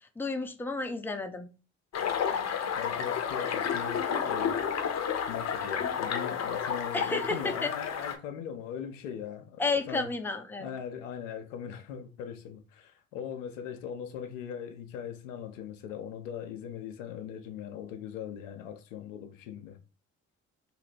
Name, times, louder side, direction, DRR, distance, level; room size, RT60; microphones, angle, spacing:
voice 1, 0.2-1.5 6.9-7.7 9.6-10.7, left 3 dB, 5° left, 0.5 m, -31 dB
sound 1, 1.9-8.2, left 7 dB, 45° left, 0.7 m, -31 dB
voice 2, 2.8-4.6 5.3-10.1 10.6-19.8, left 8 dB, 80° left, 0.5 m, -40 dB
2.7 x 2.5 x 3.3 m
hypercardioid pair, 50°, 38 cm